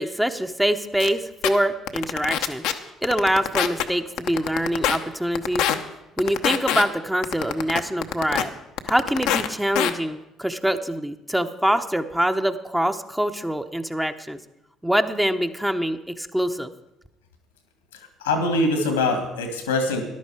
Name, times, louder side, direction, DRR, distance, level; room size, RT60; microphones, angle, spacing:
voice 1, 0.0-2.6 3.0-5.6 6.2-8.5 8.9-14.4 14.8-16.7, equal, 5° right, 7 dB, 1.0 m, -24 dB
sound 1, 1.0-1.1 1.4-1.5 1.9-2.7 3.0-3.8 4.2-5.0 5.3-5.8 6.2-6.8 7.2-8.4 8.8-9.5 9.7-9.9, left 11 dB, 70° left, 0.8 m, -23 dB
voice 2, 18.2-20.0, left 2 dB, 90° left, 7 dB, 2.0 m, -23 dB
13.5 x 11.5 x 4.9 m, 0.92 s
hypercardioid pair, 55°, 0 cm